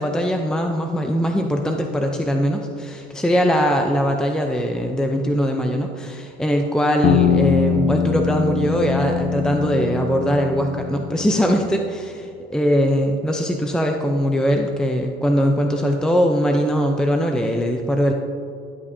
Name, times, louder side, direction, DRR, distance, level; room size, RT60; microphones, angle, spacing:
voice 1, 0.0-18.1, equal, 5° left, 3 dB, 0.5 m, -21 dB
sound 1, 7.0-11.7, left 7 dB, 45° left, 0.7 m, -22 dB
12.0 x 8.3 x 2.7 m, 2.5 s
supercardioid pair, 115°, 20 cm